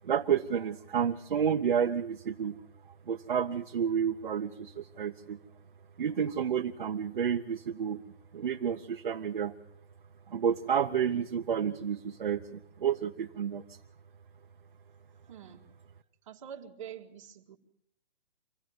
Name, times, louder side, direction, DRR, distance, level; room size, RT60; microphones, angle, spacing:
voice 1, 0.0-2.6 3.1-5.4 6.0-8.0 8.3-9.5 10.3-13.8, right 8 dB, 50° right, 3 dB, 1.0 m, -30 dB
voice 2, 15.3-15.6 16.3-17.6, right 9 dB, 30° right, 0 dB, 2.0 m, -45 dB
25.5 x 16.5 x 8.0 m, 0.66 s
hypercardioid pair, 180°, 31 cm